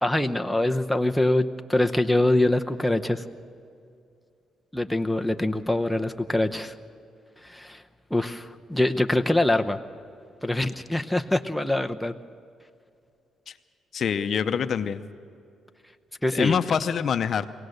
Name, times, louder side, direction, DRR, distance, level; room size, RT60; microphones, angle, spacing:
voice 1, 0.0-3.2 4.7-6.7 7.4-7.8 8.1-9.8 10.4-12.1 16.2-16.6, left 1 dB, 5° left, 5 dB, 0.8 m, -24 dB
voice 2, 13.9-15.0 16.3-17.5, left 7 dB, 55° left, 10 dB, 0.7 m, -25 dB
23.0 x 17.5 x 6.6 m, 2.4 s
cardioid pair, 90°, 0 cm